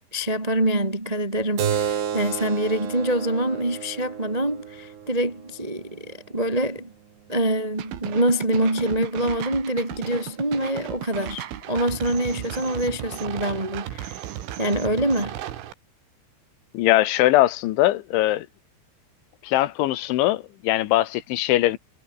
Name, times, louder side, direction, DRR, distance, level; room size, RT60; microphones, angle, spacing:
voice 1, 0.1-6.9 7.3-14.2 14.6-15.4, right 1 dB, 35° right, 0.6 m, -25 dB
Keyboard (musical), 1.6-6.7, right 8 dB, 65° right, 5.0 m, -31 dB
sound 1, 7.8-15.7, right 11 dB, 90° right, 4.7 m, -35 dB
voice 2, 16.7-18.5 19.4-21.8, left 15 dB, 85° left, 3.6 m, -21 dB
omnidirectional pair, 5.4 m